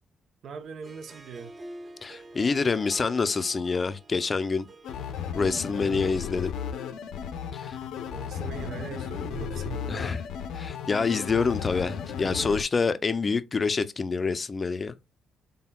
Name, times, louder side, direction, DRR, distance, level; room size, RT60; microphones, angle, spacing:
voice 1, 0.4-1.5 5.8-6.3 8.1-10.1, right 7 dB, 65° right, 0.6 m, -41 dB
Harp, 0.7-6.1, right 1 dB, 25° right, 0.8 m, -47 dB
voice 2, 2.0-4.7 5.3-6.5 7.5-7.8 9.9-10.2 10.5-14.9, left 4 dB, 35° left, 0.4 m, -27 dB
sound 1, 4.8-12.6, left 8 dB, 80° left, 0.5 m, -35 dB
4.2 x 3.4 x 2.2 m
cardioid pair, 90°, 0 cm